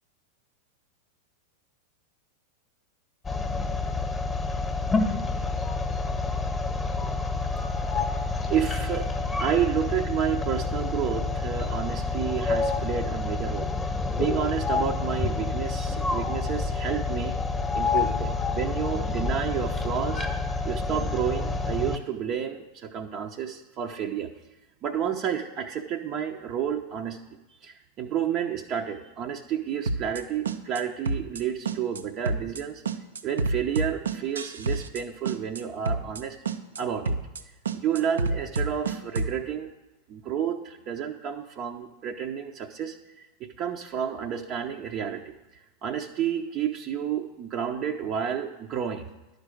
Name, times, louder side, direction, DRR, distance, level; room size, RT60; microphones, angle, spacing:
sound 1, 3.2-22.0, left 3 dB, 15° left, 1.2 m, -28 dB
voice 1, 8.5-9.1 9.4-13.7 14.1-17.4 17.7-20.2 20.6-24.3 24.8-27.2 27.5-32.8 33.2-36.4 36.8-37.2 37.7-39.7 40.1-49.1, right 8 dB, 35° right, 2 dB, 0.8 m, -30 dB
sound 2, 29.9-30.2 30.5-30.8 31.1-31.4 31.7-32.0 32.3-32.6 32.9-35.0 35.3-35.6 35.9-36.2 36.5-36.8 37.1-37.4 37.7-39.4, right 3 dB, 70° right, 0.7 m, -28 dB
11.5 x 5.3 x 7.7 m, 1.1 s
figure-of-eight pair, 90°, 0 cm